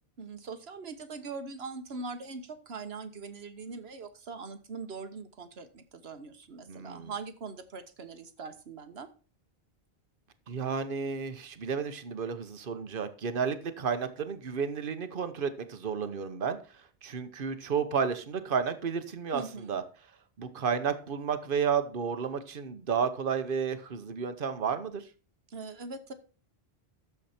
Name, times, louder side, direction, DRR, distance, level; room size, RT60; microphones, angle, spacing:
voice 1, 0.2-9.1 19.3-19.7 25.5-26.1, right 4 dB, 75° right, 9 dB, 1.5 m, -41 dB
voice 2, 6.7-7.1 10.5-16.6 17.0-19.8 20.4-25.0, right 6 dB, 60° right, 10 dB, 1.2 m, -32 dB
12.0 x 7.3 x 4.3 m, 0.36 s
omnidirectional pair, 1.0 m